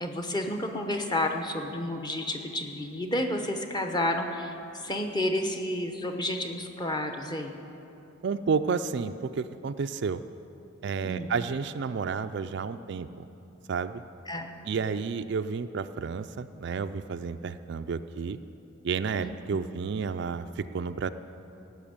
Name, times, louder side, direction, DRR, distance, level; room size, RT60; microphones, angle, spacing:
voice 1, 0.0-7.6 11.0-11.3 14.3-14.5 19.2-19.3, left 1 dB, 20° left, 4 dB, 0.8 m, -31 dB
voice 2, 8.2-10.2 10.8-13.3 13.7-14.0 14.7-18.4 18.8-21.1, right 5 dB, 55° right, 10 dB, 0.3 m, -31 dB
16.0 x 6.2 x 8.7 m, 2.8 s
head